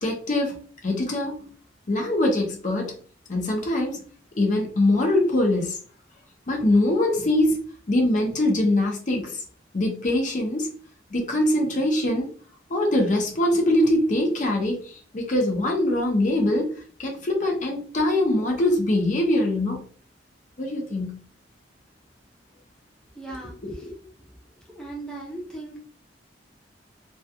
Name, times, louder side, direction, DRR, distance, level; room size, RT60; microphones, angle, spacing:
voice 1, 0.0-0.6 0.8-1.4 1.9-2.9 3.3-4.0 4.4-5.8 6.5-9.4 9.7-10.7 11.1-12.3 12.7-16.7 17.0-19.8 20.6-21.2 23.6-23.9, left 1 dB, 45° left, 0.6 m, -23 dB
voice 2, 23.1-23.9 24.2-24.3 24.7-25.8, right 2 dB, 5° left, 0.6 m, -38 dB
2.3 x 2.3 x 2.7 m
head